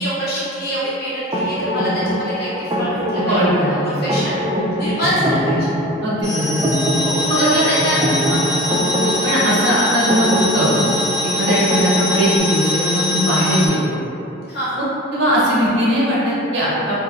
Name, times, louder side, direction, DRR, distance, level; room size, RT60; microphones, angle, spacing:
voice 1, 0.0-5.7 6.9-8.5 14.5-14.8, equal, 50° left, -10 dB, 0.7 m, -25 dB
sound 1, 1.3-12.4, equal, 20° right, 0.3 m, -22 dB
voice 2, 3.3-4.1 6.0-6.7 7.3-7.7 9.2-10.8 11.3-14.0 14.8-14.9 15.1-17.0, equal, 55° right, -7 dB, 0.8 m, -19 dB
sound 2, 6.2-13.7, left 1 dB, 15° left, 1.2 m, -23 dB
3.1 x 2.6 x 2.5 m, 2.7 s
head